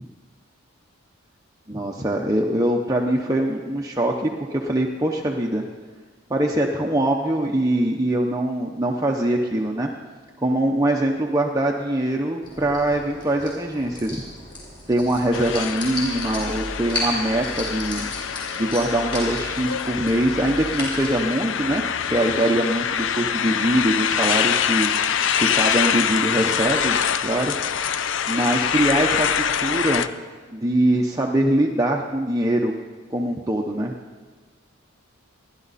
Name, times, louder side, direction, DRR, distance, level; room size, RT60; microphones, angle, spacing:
voice 1, 1.7-5.6 6.3-9.9 10.4-14.2 14.9-18.1 18.6-24.9 25.4-27.6 28.3-29.3 29.6-30.1 30.5-32.7 33.1-33.9, right 1 dB, 15° right, 0 dB, 0.8 m, -23 dB
sound 1, 12.4-21.1, left 1 dB, 20° left, 6.5 m, -34 dB
sound 2, 15.3-30.1, left 8 dB, 60° left, 0.6 m, -25 dB
28.0 x 11.5 x 4.2 m, 1.5 s
head